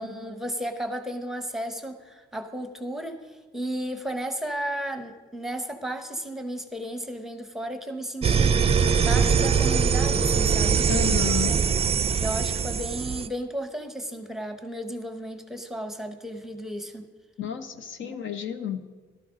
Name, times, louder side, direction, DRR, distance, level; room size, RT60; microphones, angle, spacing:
voice 1, 0.0-8.7 9.0-10.9 11.5-11.6 12.0-17.1 18.0-18.2 18.6-18.7, right 1 dB, ahead, 7 dB, 1.0 m, -34 dB
sound 1, 8.2-13.3, right 6 dB, 30° right, 0.4 m, -22 dB
voice 2, 10.9-11.6 17.4-19.0, left 8 dB, 70° left, 8 dB, 0.9 m, -31 dB
13.0 x 12.5 x 3.8 m, 1.4 s
cardioid pair, 95°, 21 cm